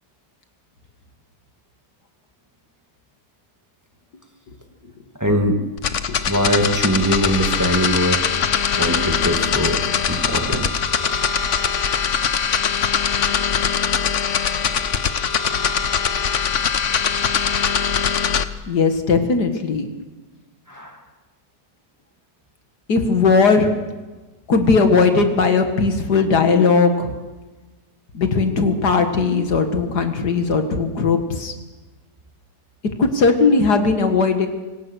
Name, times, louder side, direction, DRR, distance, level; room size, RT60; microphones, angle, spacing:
voice 1, 5.2-5.6 6.3-8.3 8.7-9.8 10.1-10.7 20.7-21.0, equal, 10° right, 3 dB, 2.1 m, -21 dB
sound 1, 5.8-18.4, left 7 dB, 55° left, 1.2 m, -21 dB
voice 2, 18.7-19.9 22.9-23.7 24.5-27.1 28.1-31.5 33.0-34.5, left 4 dB, 80° left, 6 dB, 2.4 m, -18 dB
25.0 x 18.5 x 6.4 m, 1.2 s
omnidirectional pair, 1.7 m